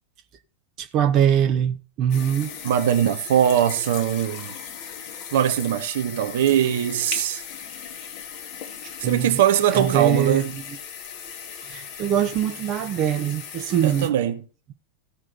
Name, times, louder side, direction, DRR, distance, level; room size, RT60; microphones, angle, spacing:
voice 1, 0.8-2.5 9.0-9.4 9.7-10.8 11.6-14.1, right 9 dB, 35° right, 1.2 m, -23 dB
sound 1, 2.1-14.1, left 8 dB, 45° left, 2.3 m, -38 dB
voice 2, 2.6-4.5 5.3-7.4 9.0-10.5 13.8-14.4, right 10 dB, 55° right, 1.2 m, -21 dB
16.5 x 6.2 x 4.4 m
figure-of-eight pair, 90°, 0 cm